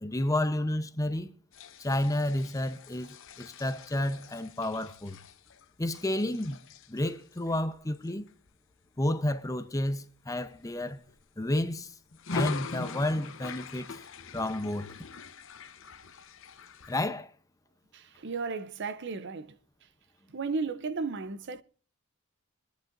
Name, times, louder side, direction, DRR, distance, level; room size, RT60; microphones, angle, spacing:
voice 1, 0.0-1.3 1.8-5.2 5.8-6.6 6.9-8.3 9.0-11.0 11.4-11.9 12.3-14.0 14.3-14.9 16.9-17.3, left 1 dB, 15° left, 0.7 m, -31 dB
sound 1, 1.5-9.4 9.9-10.1 10.5-11.6 12.1-17.0, left 4 dB, 65° left, 1.0 m, -42 dB
voice 2, 17.9-19.6 20.3-21.6, right 4 dB, 55° right, 0.6 m, -34 dB
25.0 x 10.5 x 2.6 m
head